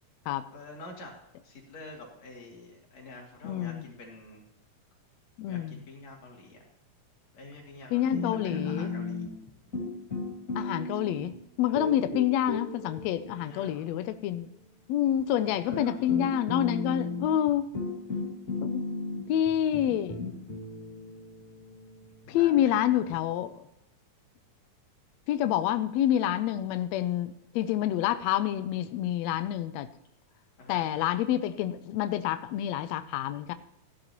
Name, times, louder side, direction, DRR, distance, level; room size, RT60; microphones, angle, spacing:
voice 1, 0.5-1.1 1.4-4.4 5.5-6.6 7.3-9.3 11.8-12.0 13.4-13.9 15.6-16.0 22.2-23.1 30.6-30.8, left 2 dB, 60° left, -1 dB, 3.7 m, -47 dB
voice 2, 3.4-3.9 5.4-5.8 7.9-8.9 10.5-14.5 14.9-17.6 18.6-18.8 19.3-20.2 22.3-23.6 25.3-29.9 30.7-33.5, left 11 dB, 80° left, 11 dB, 1.5 m, -28 dB
sound 1, 8.1-9.5 9.7-11.3 11.7-14.2 15.2-15.3 15.7-23.2, left 3 dB, 30° left, 1.8 m, -35 dB
16.0 x 11.5 x 3.0 m, 0.81 s
omnidirectional pair, 3.6 m